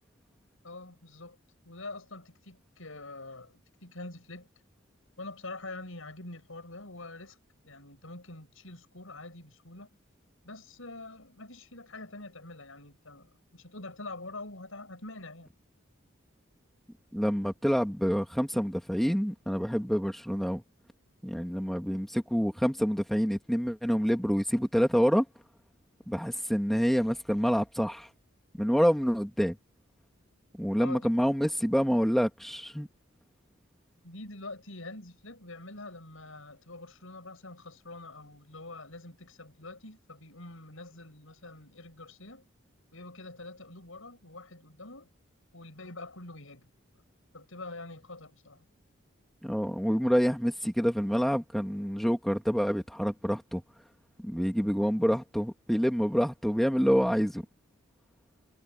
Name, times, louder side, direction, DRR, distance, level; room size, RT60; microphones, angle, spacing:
voice 1, 0.6-1.4 1.6-4.5 5.2-7.4 7.6-9.9 10.4-15.5 30.8-31.1 34.0-42.5 42.9-45.1 45.5-46.7 47.3-48.7, left 2 dB, 80° left, 6.2 m, -45 dB
voice 2, 17.1-20.6 21.2-25.2 26.1-28.1 28.6-29.6 30.6-32.9 49.4-53.6 54.2-57.4, equal, ahead, 2.6 m, -27 dB
head